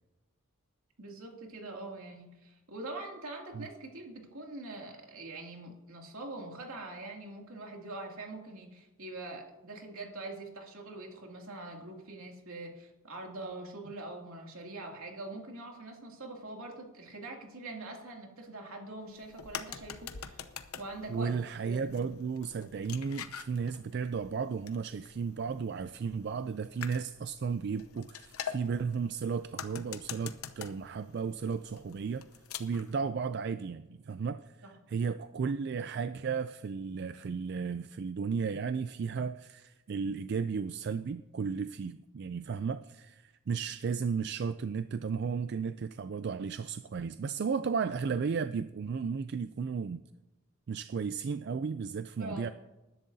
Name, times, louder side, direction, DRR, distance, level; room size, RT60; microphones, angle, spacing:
voice 1, 1.0-20.5 20.8-21.3 21.6-22.1 34.6-34.7 52.2-52.5, right 2 dB, 80° right, 2.6 m, -44 dB
sound 1, 19.1-32.9, left 8 dB, 90° left, 0.8 m, -46 dB
voice 2, 21.1-32.3 32.6-50.0 50.7-52.5, right 5 dB, 50° right, 0.3 m, -34 dB
20.0 x 11.0 x 2.7 m
head